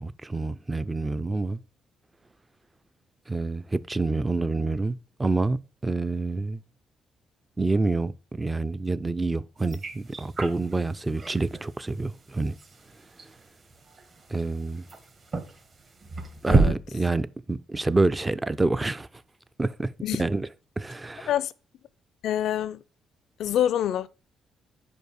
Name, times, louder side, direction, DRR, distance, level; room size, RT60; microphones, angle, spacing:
voice 1, 0.0-1.6 3.3-6.6 7.6-12.5 14.3-14.9 16.4-19.1 19.6-19.9 20.2-20.5 20.8-21.3, right 3 dB, 20° right, 0.4 m, -27 dB
sound 1, 9.6-16.7, right 3 dB, 40° right, 1.5 m, -31 dB
voice 2, 16.5-16.8 20.0-20.2 21.3-21.5 22.2-22.8 23.4-24.1, left 11 dB, 75° left, 0.4 m, -26 dB
5.3 x 4.6 x 6.3 m
cardioid pair, 90°, 0 cm